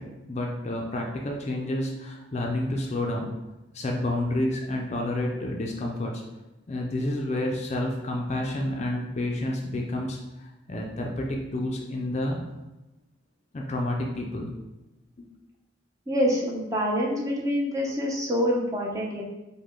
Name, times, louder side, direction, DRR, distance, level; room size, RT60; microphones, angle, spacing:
voice 1, 0.0-3.3 3.7-6.2 6.7-12.4 13.5-14.5 15.2-15.3, left 1 dB, 35° left, 0 dB, 0.4 m, -29 dB
voice 2, 16.1-19.2, equal, 15° right, -2 dB, 0.6 m, -26 dB
5.1 x 2.2 x 3.6 m, 1.0 s
head